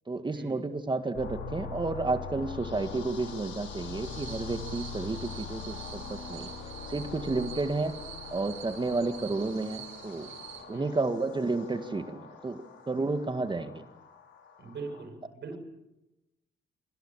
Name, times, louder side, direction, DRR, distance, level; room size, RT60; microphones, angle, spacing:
voice 1, 0.1-6.5 6.9-8.0 8.3-10.3 10.7-13.8, right 3 dB, 25° right, 8 dB, 1.9 m, -31 dB
sound 1, 1.1-15.0, left 5 dB, 75° left, 5.8 m, -43 dB
sound 2, 4.0-10.6, right 9 dB, 80° right, 6.1 m, -46 dB
voice 2, 14.6-15.6, right 4 dB, 60° right, 6 dB, 7.2 m, -41 dB
26.5 x 24.5 x 7.4 m, 0.95 s
cardioid pair, 90°, 20 cm